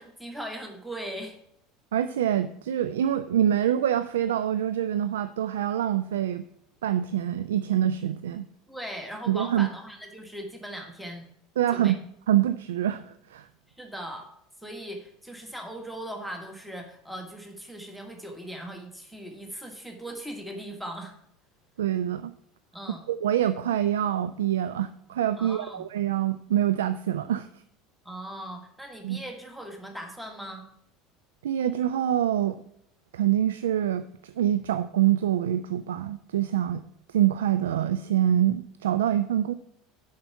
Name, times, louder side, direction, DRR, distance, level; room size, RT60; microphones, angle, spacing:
voice 1, 0.0-1.4 8.7-11.3 11.7-11.9 13.8-14.2 14.6-21.1 22.7-23.0 25.4-25.8 28.0-30.7, right 1 dB, ahead, 3 dB, 1.6 m, -39 dB
voice 2, 1.9-6.5 6.8-8.5 9.3-9.7 11.6-12.0 12.3-13.5 21.8-22.3 23.1-27.5 29.0-29.2 31.4-32.6 33.1-36.8 37.1-39.5, right 11 dB, 70° right, 13 dB, 0.3 m, -25 dB
7.5 x 5.8 x 6.9 m, 0.73 s
figure-of-eight pair, 70°, 0 cm